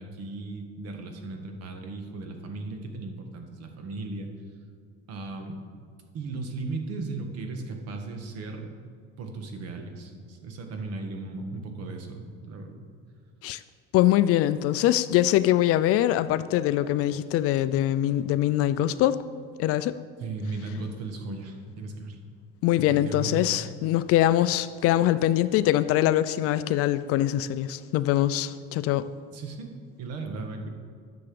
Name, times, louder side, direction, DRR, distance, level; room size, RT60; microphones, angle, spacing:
voice 1, 0.0-4.3 5.1-5.6 6.1-8.7 9.2-12.9 20.2-22.2 22.9-23.4 29.3-29.7 30.0-30.7, right 3 dB, 55° right, 4 dB, 1.6 m, -36 dB
voice 2, 13.9-19.2 19.6-19.9 22.6-29.1, left 13 dB, 50° left, 13 dB, 0.4 m, -23 dB
10.5 x 6.9 x 6.9 m, 2.1 s
cardioid pair, 155°, 29 cm